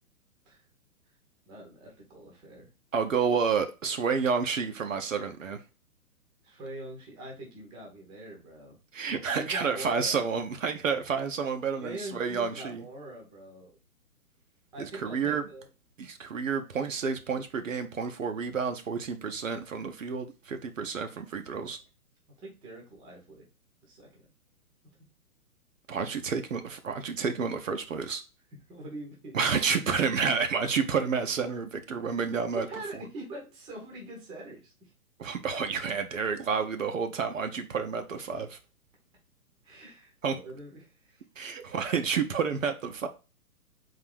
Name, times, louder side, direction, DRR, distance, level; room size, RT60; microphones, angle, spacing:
voice 1, 1.5-2.7 6.4-8.8 9.3-10.2 11.8-13.8 14.7-15.7 22.4-23.5 23.8-24.1 24.8-25.0 28.7-29.4 32.5-34.9 39.6-41.2 41.7-41.8, right 2 dB, 10° right, 0.7 m, -43 dB
voice 2, 2.9-5.6 8.9-12.8 14.8-15.4 16.0-21.8 25.9-28.2 29.3-32.7 35.2-38.6 40.2-40.4 41.4-43.1, right 5 dB, 60° right, 0.7 m, -30 dB
3.9 x 2.6 x 4.7 m
figure-of-eight pair, 125°, 44 cm